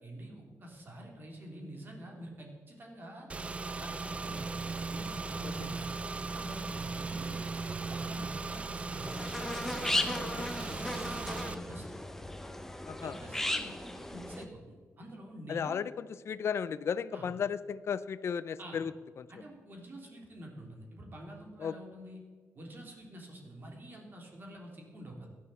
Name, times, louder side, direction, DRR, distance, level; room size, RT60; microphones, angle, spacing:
voice 1, 0.0-3.3 3.8-4.5 4.9-7.4 7.8-9.4 9.8-10.3 10.6-12.0 13.0-15.7 17.1-17.3 18.6-18.8 19.3-22.2 22.5-25.3, right 1 dB, 40° right, 0 dB, 3.3 m, -47 dB
Car / Engine, 3.3-11.5, right 3 dB, 20° right, 0.4 m, -38 dB
sound 1, 9.0-14.4, left 1 dB, 5° left, 0.8 m, -36 dB
voice 2, 15.5-18.9 19.2-19.3 21.6-21.7, left 7 dB, 55° left, 16 dB, 0.5 m, -35 dB
16.5 x 11.5 x 4.3 m, 1.5 s
wide cardioid pair, 155°, 5 cm